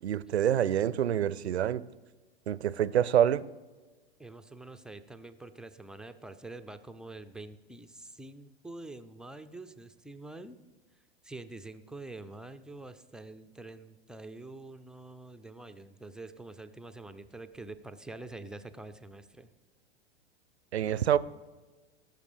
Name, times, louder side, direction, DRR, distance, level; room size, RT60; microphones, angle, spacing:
voice 1, 0.0-1.8 2.5-3.5 20.7-21.2, right 10 dB, 80° right, 0.5 m, -26 dB
voice 2, 4.2-10.6 11.2-19.5, right 2 dB, ahead, 0.4 m, -46 dB
17.5 x 6.7 x 5.0 m
figure-of-eight pair, 95°, 32 cm